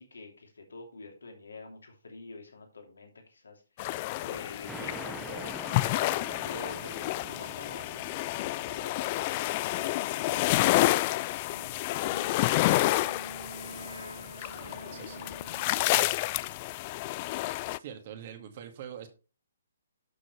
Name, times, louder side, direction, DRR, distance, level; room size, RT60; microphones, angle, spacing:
voice 1, 0.0-3.9 4.2-5.8 6.4-13.0, left 3 dB, 75° left, 2.9 m, -46 dB
sound 1, 3.8-17.8, left 18 dB, 35° left, 0.3 m, -29 dB
sound 2, 4.7-11.8, right 3 dB, 5° right, 1.0 m, -47 dB
Wind instrument woodwind instrument, 12.0-16.2, right 2 dB, 85° right, 0.6 m, -46 dB
voice 2, 14.4-15.3 15.6-16.2 17.8-19.1, right 9 dB, 45° right, 2.0 m, -45 dB
11.5 x 6.3 x 3.2 m
figure-of-eight pair, 135°, 0 cm